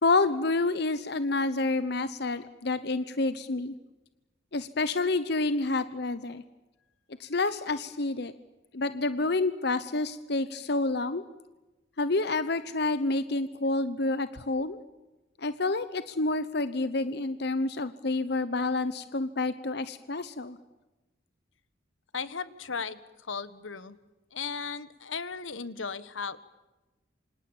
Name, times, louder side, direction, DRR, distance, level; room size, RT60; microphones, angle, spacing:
voice 1, 0.0-3.7 4.5-6.4 7.2-8.3 8.7-11.2 12.0-14.8 15.4-20.6, left 3 dB, 60° left, 13 dB, 1.0 m, -28 dB
voice 2, 22.1-24.0 24.3-26.4, left 5 dB, 85° left, 14 dB, 1.5 m, -36 dB
28.0 x 26.0 x 7.3 m, 1.1 s
head